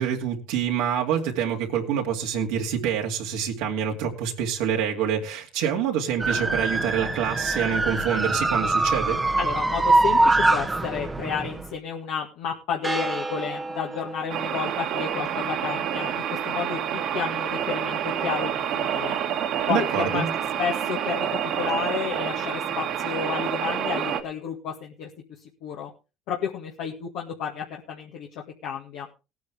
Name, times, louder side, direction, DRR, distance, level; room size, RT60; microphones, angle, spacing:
voice 1, 0.0-9.2 19.7-20.3, right 8 dB, 80° right, 1 dB, 2.3 m, -26 dB
sound 1, 6.2-11.7 12.8-14.4, right 2 dB, 15° right, 0.9 m, -24 dB
voice 2, 9.4-19.2 19.7-20.3 20.6-21.3 21.6-25.1 25.6-25.9 26.3-28.3 28.6-29.1, left 7 dB, 75° left, -1 dB, 1.9 m, -31 dB
sound 2, 14.3-24.2, right 9 dB, 65° right, 2.0 m, -28 dB
17.5 x 9.4 x 3.5 m, 0.31 s
supercardioid pair, 85°, 0 cm